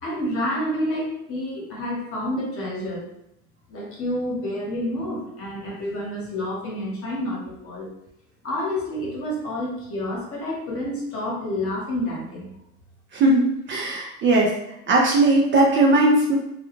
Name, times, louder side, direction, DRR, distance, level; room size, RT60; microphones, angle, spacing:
voice 1, 0.0-3.0 3.7-7.9 8.4-12.5, left 1 dB, 40° left, -4 dB, 1.1 m, -29 dB
voice 2, 13.1-14.5 14.9-16.4, right 2 dB, 35° right, -2 dB, 0.4 m, -18 dB
2.3 x 2.2 x 3.0 m, 0.81 s
supercardioid pair, 115°, 36 cm